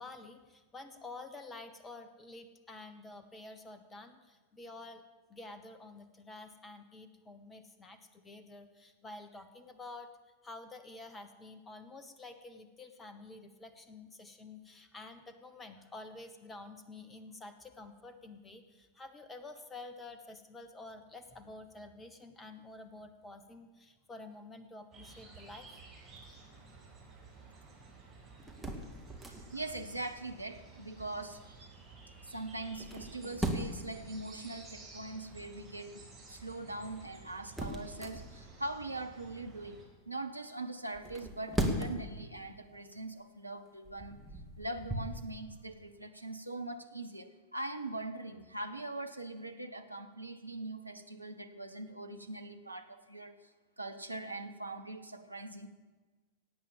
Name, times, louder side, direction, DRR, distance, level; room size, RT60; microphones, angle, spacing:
voice 1, 0.0-5.0 5.3-10.1 10.4-25.7, left 2 dB, 15° left, 9 dB, 1.2 m, -49 dB
sound 1, 24.9-39.8, right 4 dB, 20° right, 5.1 m, -54 dB
sound 2, 28.4-29.7 32.6-33.9 36.8-38.6 40.9-42.2 42.7-42.9 43.7-45.2, equal, ahead, 1.9 m, -38 dB
voice 2, 29.3-31.7 32.2-44.2 44.6-53.3 53.8-55.7, right 2 dB, 85° right, 6 dB, 1.0 m, -42 dB
17.5 x 8.6 x 7.2 m, 1.3 s
figure-of-eight pair, 90°, 0 cm